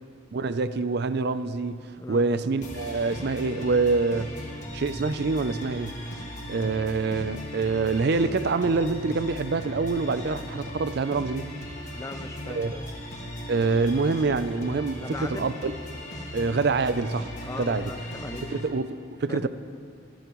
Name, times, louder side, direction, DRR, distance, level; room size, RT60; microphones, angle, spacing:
voice 1, 0.3-1.8 2.1-4.3 4.7-5.9 6.5-11.5 12.5-12.8 13.5-15.7 16.3-17.3 17.6-17.9 18.5-19.5, right 4 dB, 55° right, 13 dB, 0.4 m, -26 dB
voice 2, 2.0-2.4 6.6-6.9 11.9-12.8 14.9-15.5 17.5-18.6 19.3-19.5, left 2 dB, 15° left, 9 dB, 0.4 m, -39 dB
sound 1, 2.6-18.6, equal, 40° left, 1.8 m, -38 dB
24.5 x 10.5 x 3.1 m, 2.3 s
head